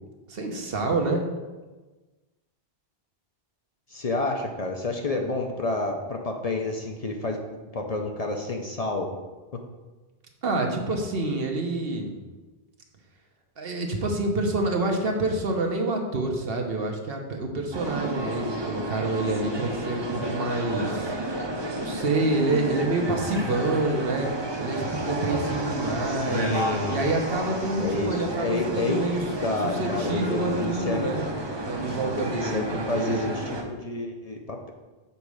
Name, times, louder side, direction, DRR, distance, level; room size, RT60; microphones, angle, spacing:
voice 1, 0.3-1.2 10.4-12.2 13.6-21.1 21.8-24.3 24.6-26.6 26.9-29.2 29.6-31.3 31.6-33.3, right 2 dB, 70° right, 2 dB, 1.1 m, -27 dB
voice 2, 3.9-9.1 26.0-27.1 27.8-29.0 29.4-31.1 32.3-34.7, left 2 dB, 45° left, 3 dB, 0.6 m, -29 dB
sound 1, 17.7-33.6, right 1 dB, 30° right, 0.7 m, -31 dB
7.1 x 4.1 x 4.8 m, 1.2 s
omnidirectional pair, 1.0 m